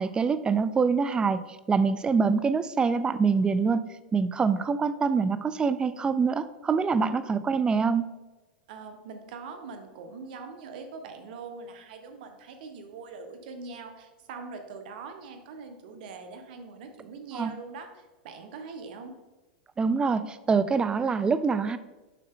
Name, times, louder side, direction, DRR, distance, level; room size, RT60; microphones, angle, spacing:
voice 1, 0.0-8.1 17.3-17.5 19.8-21.8, right 5 dB, 15° right, 13 dB, 0.4 m, -25 dB
voice 2, 8.7-19.2, right 4 dB, 65° right, 6 dB, 1.1 m, -42 dB
7.0 x 5.6 x 3.7 m, 1.2 s
hypercardioid pair, 115°, 5 cm